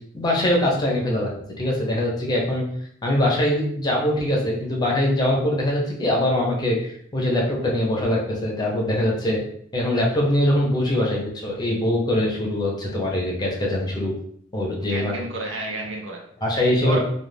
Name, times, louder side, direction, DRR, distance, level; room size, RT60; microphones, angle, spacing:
voice 1, 0.1-1.3 1.6-2.6 3.0-9.4 9.7-14.1 14.5-15.2 16.4-17.0, left 1 dB, 20° left, -2 dB, 0.6 m, -22 dB
voice 2, 14.8-16.2 16.5-17.0, right 2 dB, 70° right, 1 dB, 0.6 m, -31 dB
2.4 x 2.3 x 3.2 m, 0.65 s
head